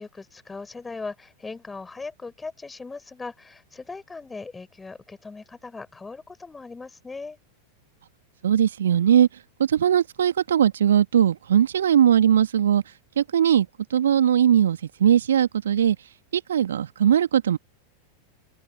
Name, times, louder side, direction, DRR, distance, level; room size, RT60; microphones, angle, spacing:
voice 1, 0.0-7.4, left 3 dB, 10° left, 6.6 m, -39 dB
voice 2, 8.4-9.3 9.6-12.8 13.2-16.0 16.3-17.6, right 9 dB, 65° right, 1.7 m, -20 dB
figure-of-eight pair, 90°, 0 cm